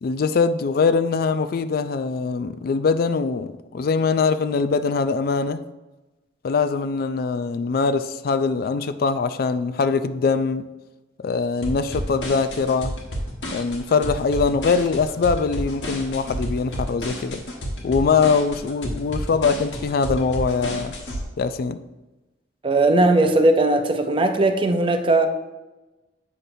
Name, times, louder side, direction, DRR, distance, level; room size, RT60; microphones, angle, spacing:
voice 1, 0.0-5.6 6.4-10.7 11.2-12.9 13.5-17.4 17.8-20.9 21.4-21.8, left 5 dB, 55° left, 0.3 m, -22 dB
sound 1, 11.6-21.2, equal, 80° left, 1.3 m, -31 dB
voice 2, 22.6-25.3, right 2 dB, 30° right, 0.5 m, -18 dB
8.0 x 5.8 x 2.6 m
head